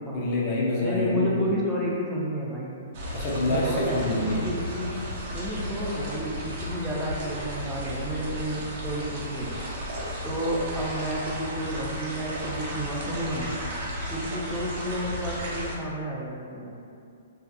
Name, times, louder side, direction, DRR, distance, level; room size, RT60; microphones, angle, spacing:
voice 1, 0.1-1.6 3.1-4.5, left 2 dB, 40° left, -5 dB, 0.5 m, -26 dB
voice 2, 0.8-2.8 3.5-4.9 5.3-9.6 10.2-13.6 14.1-16.7, right 1 dB, 10° right, -6 dB, 0.5 m, -31 dB
sound 1, 2.9-15.7, equal, 50° right, 0.6 m, -34 dB
2.6 x 2.3 x 2.2 m, 2.4 s
hypercardioid pair, 130°, 0 cm